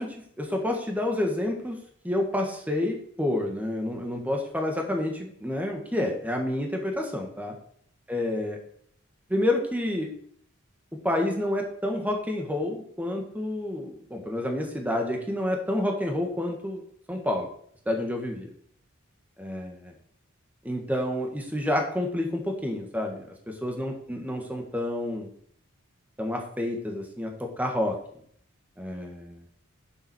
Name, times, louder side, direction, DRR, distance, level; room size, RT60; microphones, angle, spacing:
voice 1, 0.0-1.8 2.0-7.5 8.1-8.6 9.3-10.1 11.0-16.8 17.1-17.5 17.8-18.5 19.4-19.9 20.6-25.3 26.2-28.0 28.8-29.4, left 1 dB, 5° right, 2 dB, 1.6 m, -29 dB
7.5 x 7.2 x 6.3 m, 0.64 s
head